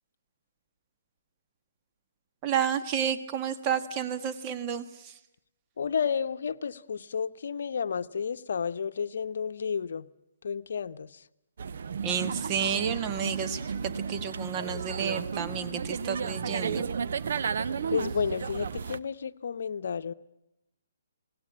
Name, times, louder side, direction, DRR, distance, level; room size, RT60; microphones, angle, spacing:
voice 1, 2.4-5.2 12.0-16.9, right 7 dB, 25° right, 1.5 m, -31 dB
voice 2, 5.8-10.1 10.4-11.2 17.5-20.1, left 6 dB, 65° left, 0.9 m, -31 dB
sound 1, 11.6-19.0, right 6 dB, 60° right, 0.8 m, -33 dB
20.0 x 18.0 x 8.7 m
hypercardioid pair, 140°, 0 cm